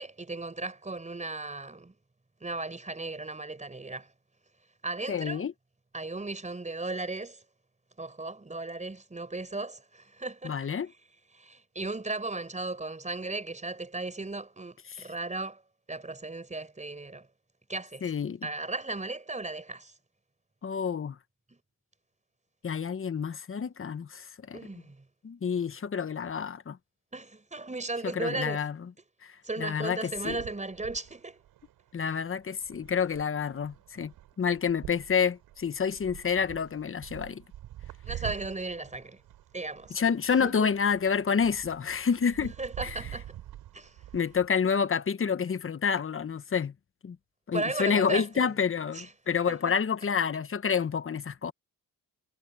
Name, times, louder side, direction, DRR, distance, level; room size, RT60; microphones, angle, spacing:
voice 1, 0.0-1.9 2.4-4.1 4.8-5.4 5.9-7.4 8.0-10.6 11.3-15.6 15.9-17.3 17.7-18.1 18.4-19.9 24.5-25.0 27.1-28.6 29.4-31.4 38.0-39.2 39.5-40.0 40.4-40.7 42.2-43.4 43.7-44.0 47.5-48.5 48.9-49.1 49.5-49.7, right 3 dB, 20° right, 5.0 m, -36 dB
voice 2, 5.1-5.5 10.4-10.9 14.9-15.0 18.0-18.5 20.6-21.2 22.6-24.7 25.2-26.8 28.0-28.9 29.2-30.4 31.9-37.4 39.9-42.5 42.8-43.0 44.1-46.7 47.0-47.2 47.5-51.5, left 6 dB, 35° left, 1.2 m, -29 dB
sound 1, 30.0-44.5, right 13 dB, 90° right, 3.6 m, -46 dB
cardioid pair, 75°, 36 cm